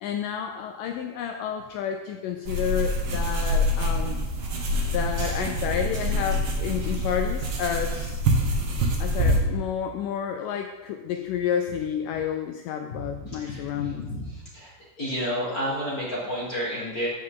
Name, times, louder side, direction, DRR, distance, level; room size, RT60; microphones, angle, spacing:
voice 1, 0.0-4.2 4.9-8.2 9.0-14.1, left 8 dB, 90° left, 5 dB, 1.8 m, -30 dB
sound 1, 2.5-9.4, equal, 85° right, 1.1 m, -26 dB
voice 2, 13.2-14.2 14.5-14.7 15.0-17.1, equal, 60° left, -6 dB, 0.9 m, -31 dB
15.0 x 5.4 x 3.8 m, 1.2 s
omnidirectional pair, 4.3 m